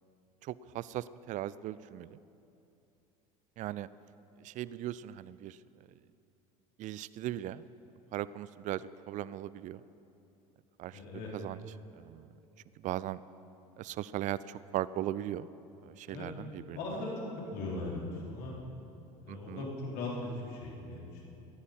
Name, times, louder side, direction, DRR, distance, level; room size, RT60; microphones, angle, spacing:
voice 1, 0.4-2.2 3.6-3.9 4.4-5.6 6.8-7.6 8.1-9.8 10.8-11.0 11.3-11.6 12.0-12.3 12.8-13.2 13.8-15.5 15.8-17.0 19.3-19.7, right 13 dB, 40° right, 18 dB, 0.5 m, -38 dB
voice 2, 10.9-11.3 16.1-16.3 16.7-17.1 17.5-18.5 19.2-21.3, left 2 dB, 55° left, -4 dB, 4.5 m, -39 dB
18.0 x 14.0 x 5.5 m, 2.7 s
figure-of-eight pair, 65°, 19 cm